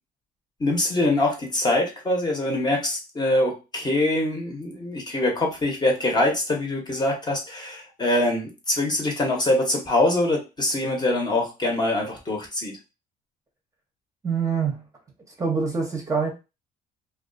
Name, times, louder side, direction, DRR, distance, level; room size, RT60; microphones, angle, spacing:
voice 1, 0.6-12.8, left 1 dB, 25° left, 0.8 m, -24 dB
voice 2, 14.2-14.8 15.4-16.3, right 5 dB, 20° right, 0.7 m, -25 dB
2.3 x 2.3 x 2.5 m
cardioid pair, 110°, 17 cm